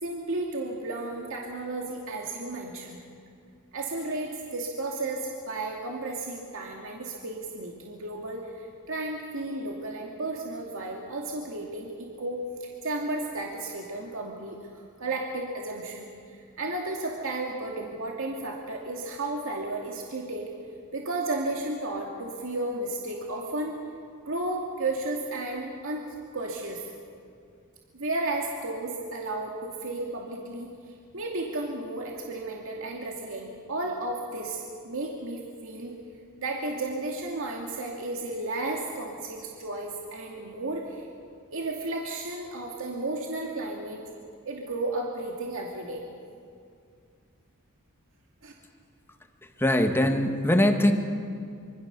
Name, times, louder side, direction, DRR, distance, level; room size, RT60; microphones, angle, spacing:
voice 1, 0.0-3.0 3.7-20.5 20.9-23.8 24.3-26.9 27.9-35.9 36.4-41.1 41.5-44.0 44.5-46.0 48.4-48.5, right 2 dB, 65° right, 0 dB, 2.4 m, -33 dB
voice 2, 49.6-50.9, left 1 dB, 10° left, 4 dB, 1.9 m, -22 dB
26.0 x 25.0 x 7.0 m, 2.3 s
head